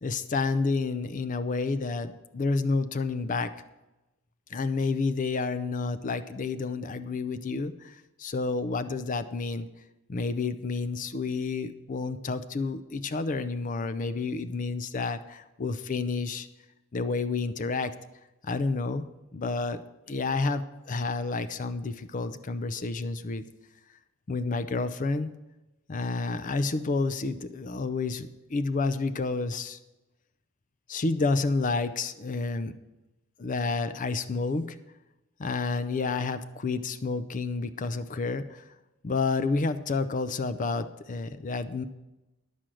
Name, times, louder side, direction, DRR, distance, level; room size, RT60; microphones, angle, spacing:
voice 1, 0.0-3.5 4.5-9.7 10.1-16.5 16.9-17.9 18.4-19.0 19.3-19.8 20.1-23.4 24.3-25.3 25.9-29.8 30.9-32.7 33.4-34.8 35.4-38.6 39.0-41.8, left 3 dB, 35° left, 12 dB, 0.5 m, -30 dB
10.0 x 6.2 x 7.5 m, 1.0 s
head